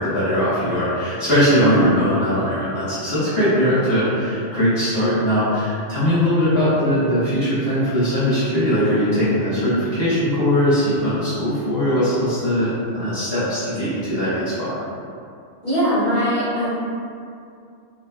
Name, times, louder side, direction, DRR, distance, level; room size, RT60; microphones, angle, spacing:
voice 1, 0.0-14.7, equal, 50° left, -12 dB, 1.1 m, -20 dB
voice 2, 15.6-16.7, equal, 25° right, -15 dB, 1.2 m, -20 dB
3.2 x 2.6 x 2.3 m, 2.4 s
omnidirectional pair, 1.4 m